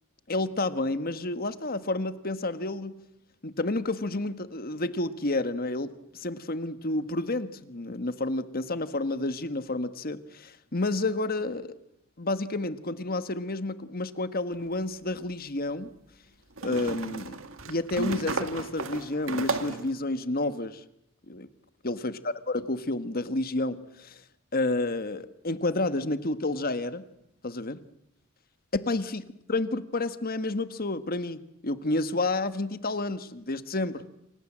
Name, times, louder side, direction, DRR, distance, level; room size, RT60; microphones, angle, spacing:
voice 1, 0.3-3.0 3.4-11.7 12.2-15.9 16.6-17.4 17.7-20.8 21.3-21.5 21.8-24.2 24.5-27.1 27.4-27.8 28.7-34.0, left 2 dB, 45° left, 12 dB, 1.5 m, -30 dB
sound 1, 14.6-14.7 16.6-19.9, right 3 dB, 70° right, 2.0 m, -33 dB
28.5 x 25.5 x 7.5 m, 0.77 s
head